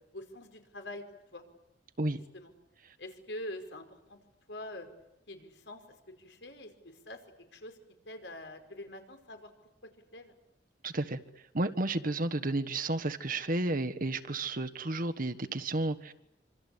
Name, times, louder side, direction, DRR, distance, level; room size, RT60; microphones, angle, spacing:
voice 1, 0.1-1.0 1.3-1.4 2.1-2.5 3.0-4.2 4.5-4.9 5.3-5.8 6.2-7.2 7.5-7.8 8.0-9.5 10.1-10.4, left 1 dB, 80° left, 6 dB, 5.0 m, -44 dB
voice 2, 10.8-11.2 11.5-16.1, right 2 dB, 50° right, 9 dB, 1.4 m, -32 dB
26.0 x 26.0 x 8.5 m, 0.89 s
head